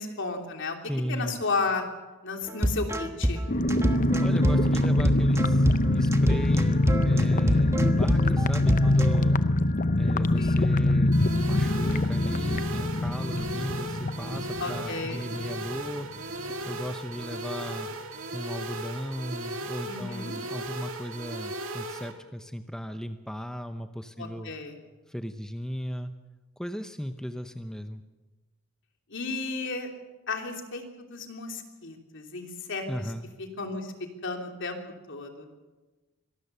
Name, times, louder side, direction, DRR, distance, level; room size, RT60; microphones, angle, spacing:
voice 1, 0.0-0.8 1.1-1.8 2.2-3.4 10.3-10.7 14.6-15.3 19.8-20.3 24.2-24.7 29.1-29.9 30.3-32.8 33.4-33.9 34.2-34.8 35.1-35.5, left 3 dB, 60° left, 3 dB, 3.1 m, -33 dB
voice 2, 0.8-1.4 4.2-9.4 10.0-16.1 16.4-17.9 18.3-24.5 25.1-26.1 26.6-28.0 32.9-33.3, equal, 5° left, 8 dB, 0.7 m, -36 dB
sound 1, 2.5-9.2, equal, 15° right, 1.3 m, -28 dB
sound 2, 3.5-15.8 16.1-16.2 16.5-16.8, left 1 dB, 35° left, 0.7 m, -24 dB
sound 3, 11.1-22.1, right 2 dB, 65° right, 2.4 m, -37 dB
25.0 x 19.0 x 6.9 m, 1.2 s
head